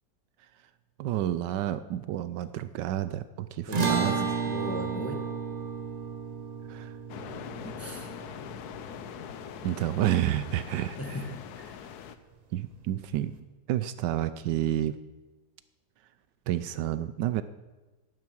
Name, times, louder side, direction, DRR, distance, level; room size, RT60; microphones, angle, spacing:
voice 1, 1.0-4.2 6.7-6.9 9.6-11.2 12.5-13.3 13.7-15.0 16.5-17.4, right 12 dB, 80° right, 13 dB, 1.2 m, -30 dB
voice 2, 3.7-5.2 7.6-8.1 11.0-11.7, equal, 10° left, 3 dB, 1.2 m, -38 dB
sound 1, 3.7-10.2, right 5 dB, 35° right, 0.7 m, -33 dB
sound 2, 7.1-12.2, left 9 dB, 70° left, 1.2 m, -42 dB
11.0 x 10.5 x 6.1 m, 1.2 s
omnidirectional pair, 1.9 m